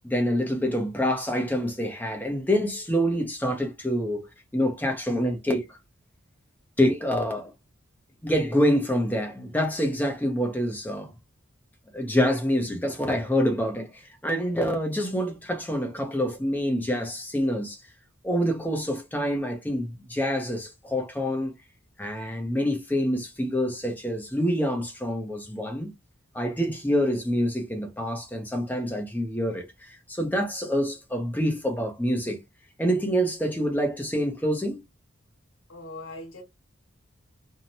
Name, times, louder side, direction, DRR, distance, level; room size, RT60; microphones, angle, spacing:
voice 1, 0.0-4.3 4.5-5.8 6.8-7.5 8.2-11.1 11.9-17.8 18.2-21.5 22.0-25.9 26.3-32.4 32.8-34.8, equal, 10° left, 0.6 m, -26 dB
voice 2, 35.7-36.4, left 2 dB, 75° left, 1.0 m, -40 dB
2.7 x 2.1 x 2.8 m
head